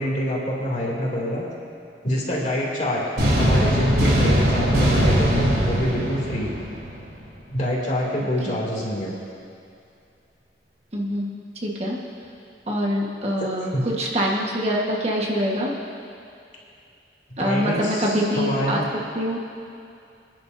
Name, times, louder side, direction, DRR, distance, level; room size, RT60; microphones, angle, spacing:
voice 1, 0.0-1.5 2.0-3.0 3.3-6.5 7.5-9.1 13.7-13.8 17.4-18.9, equal, 45° left, -4 dB, 2.6 m, -26 dB
sound 1, 3.2-7.1, equal, 60° right, 3.4 m, -20 dB
voice 2, 10.9-12.0 12.7-15.7 17.4-18.8 19.1-19.4, equal, 35° right, -2 dB, 1.4 m, -25 dB
26.5 x 10.5 x 2.7 m, 2.5 s
head